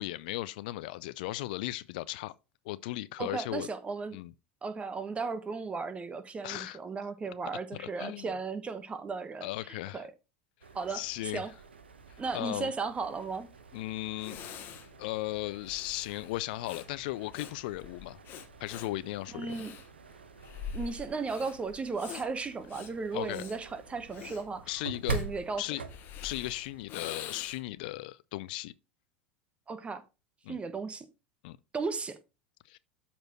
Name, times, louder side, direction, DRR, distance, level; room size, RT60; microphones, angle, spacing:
voice 1, 0.0-2.3 2.6-3.7 4.1-4.3 6.4-6.8 7.8-8.3 9.4-10.1 10.9-11.4 12.1-12.7 13.7-14.4 15.0-18.2 18.6-19.6 23.1-23.4 24.7-25.2 25.6-25.8 26.2-28.7 30.4-30.6 31.4-31.6 32.6-32.8, left 18 dB, 55° left, 0.4 m, -36 dB
voice 2, 3.2-4.2 4.6-10.1 10.7-11.5 12.2-13.5 19.3-19.7 20.7-24.8 25.1-25.6 29.7-30.0 30.5-31.1 31.7-32.2, right 4 dB, 20° right, 1.1 m, -35 dB
sound 1, 10.6-26.9, right 4 dB, 75° right, 1.0 m, -45 dB
Breathing, 13.7-13.8 14.2-27.8, left 7 dB, 40° left, 1.3 m, -46 dB
12.5 x 4.3 x 3.0 m
figure-of-eight pair, 80°, 6 cm